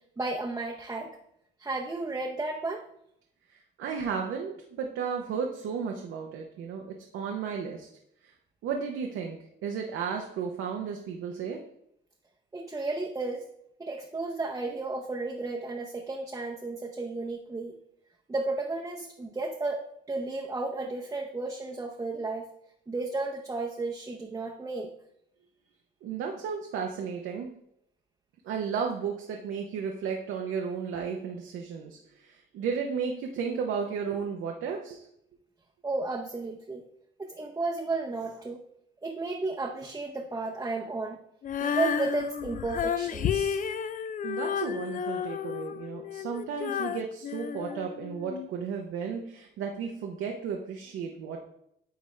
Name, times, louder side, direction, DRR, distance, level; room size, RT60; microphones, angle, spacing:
voice 1, 0.2-1.2 1.6-2.8 12.5-13.5 13.8-17.8 18.3-19.8 20.1-22.5 22.9-24.9 35.8-36.8 37.2-38.6 39.0-41.2 41.6-43.6, right 3 dB, 15° right, 0 dB, 0.7 m, -33 dB
voice 2, 3.5-7.9 8.2-8.3 8.6-11.6 26.0-27.5 28.4-35.1 44.2-51.4, right 6 dB, 85° right, 2 dB, 0.7 m, -34 dB
Female singing, 41.4-48.5, left 8 dB, 40° left, 0.4 m, -32 dB
9.3 x 3.5 x 3.2 m, 0.75 s
cardioid pair, 90°, 20 cm